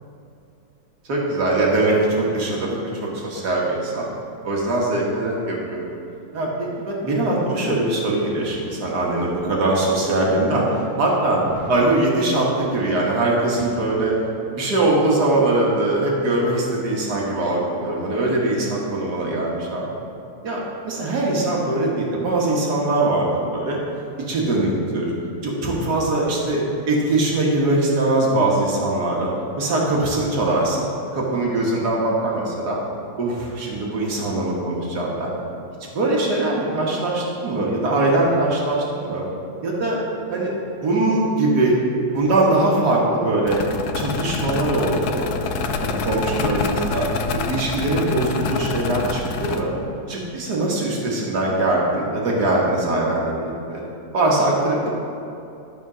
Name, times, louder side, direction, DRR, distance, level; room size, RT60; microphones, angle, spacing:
voice 1, 1.1-4.1 4.4-5.9 6.3-11.4 11.7-14.1 14.5-19.9 20.4-23.8 24.3-25.1 25.4-29.3 29.6-30.9 31.1-32.8 33.2-35.3 35.9-39.3 39.6-40.0 40.3-40.5 40.8-41.8 42.1-43.6 44.0-45.3 45.8-47.1 47.5-49.7 50.1-53.8 54.1-54.9, right 2 dB, 85° right, -3 dB, 2.0 m, -21 dB
sound 1, 11.2-11.8 13.6-14.2 14.6-14.7, right 1 dB, 70° right, 2.6 m, -39 dB
sound 2, 43.5-49.6, left 5 dB, 75° left, 1.1 m, -26 dB
12.5 x 4.4 x 6.1 m, 2.7 s
omnidirectional pair, 1.7 m